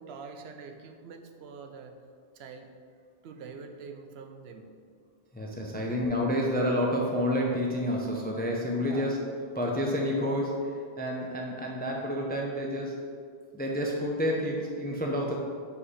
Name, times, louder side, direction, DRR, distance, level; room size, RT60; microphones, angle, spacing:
voice 1, 0.0-2.0 2.3-2.7 3.2-4.7 5.7-6.0 8.9-9.1, right 5 dB, 75° right, 5 dB, 0.8 m, -45 dB
voice 2, 5.3-9.2 9.5-13.0 13.5-15.3, equal, 15° left, -1 dB, 0.3 m, -29 dB
4.8 x 4.2 x 4.9 m, 2.1 s
omnidirectional pair, 1.1 m